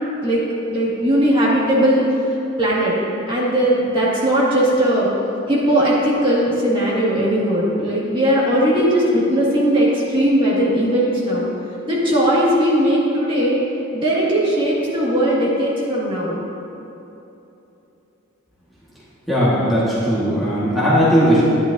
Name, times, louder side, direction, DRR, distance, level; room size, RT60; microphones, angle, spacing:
voice 1, 0.7-2.0 2.6-2.9 3.3-5.1 5.5-11.5 11.9-13.6 13.9-16.3, right 1 dB, 25° right, -7 dB, 2.1 m, -18 dB
voice 2, 19.3-21.4, equal, ahead, -10 dB, 1.6 m, -17 dB
12.0 x 10.5 x 2.7 m, 2.9 s
head